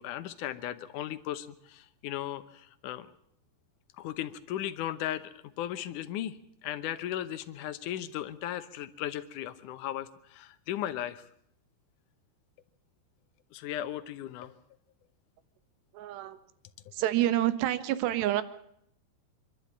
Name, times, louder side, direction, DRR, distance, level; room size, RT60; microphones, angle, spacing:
voice 1, 0.0-3.1 4.0-6.4 6.6-11.2 13.5-14.5, left 12 dB, 75° left, 12 dB, 1.8 m, -36 dB
voice 2, 15.9-16.4 16.9-18.4, right 13 dB, 85° right, 12 dB, 3.3 m, -28 dB
26.0 x 12.5 x 8.6 m, 0.72 s
omnidirectional pair, 4.9 m